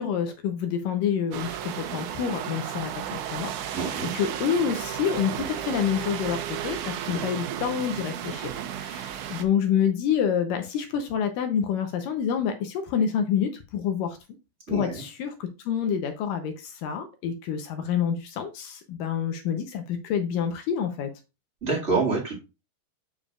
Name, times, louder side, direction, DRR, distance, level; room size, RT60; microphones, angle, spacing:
voice 1, 0.0-14.2 14.7-21.1, left 8 dB, 80° left, 6 dB, 2.1 m, -28 dB
sound 1, 1.3-9.5, right 10 dB, 90° right, 1.7 m, -33 dB
voice 2, 3.7-4.1 7.1-7.2 14.7-15.0 21.6-22.4, right 4 dB, 25° right, -4 dB, 1.5 m, -27 dB
7.1 x 6.8 x 2.4 m, 0.28 s
omnidirectional pair, 4.5 m